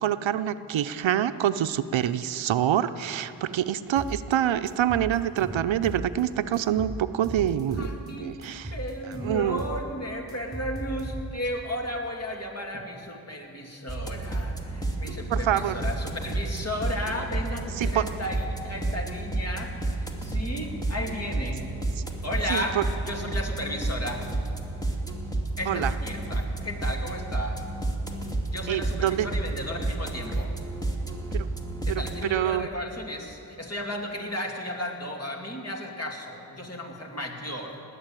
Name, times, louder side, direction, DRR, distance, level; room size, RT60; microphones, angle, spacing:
voice 1, 0.0-8.7 9.1-9.6 15.3-15.7 17.7-18.0 22.0-22.1 22.5-22.8 25.7-25.9 28.7-29.3 31.3-31.5 31.9-32.7, right 11 dB, 75° right, 12 dB, 0.7 m, -26 dB
sound 1, 4.0-4.4 4.7-6.2 6.5-8.1 8.4-11.5, right 1 dB, 10° right, 4.7 m, -36 dB
voice 2, 7.8-8.4 8.7-21.7 22.2-22.8 23.0-24.3 25.6-27.6 28.5-30.5 31.8-37.8, equal, 30° left, 2 dB, 2.7 m, -34 dB
sound 2, 13.9-32.2, right 2 dB, 10° left, 2.2 m, -31 dB
19.0 x 8.3 x 9.0 m, 2.8 s
cardioid pair, 50°, 47 cm